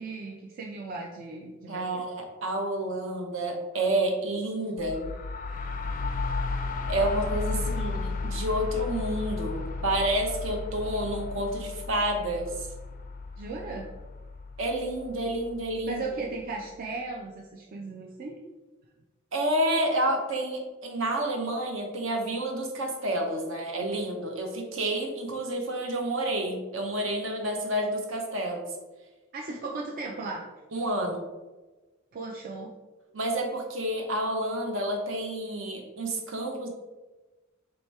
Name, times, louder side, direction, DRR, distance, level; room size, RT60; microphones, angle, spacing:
voice 1, 0.0-2.1 7.5-7.6 13.4-13.9 15.9-18.4 29.3-30.4 32.1-32.7, right 3 dB, 45° right, -1 dB, 0.4 m, -36 dB
voice 2, 1.7-5.1 6.9-12.7 14.6-16.0 19.3-28.7 30.7-31.2 33.1-36.7, right 1 dB, 70° right, 2 dB, 0.8 m, -29 dB
sound 1, 4.8-16.4, left 3 dB, 40° left, 0.3 m, -34 dB
3.1 x 2.9 x 4.5 m, 1.2 s
head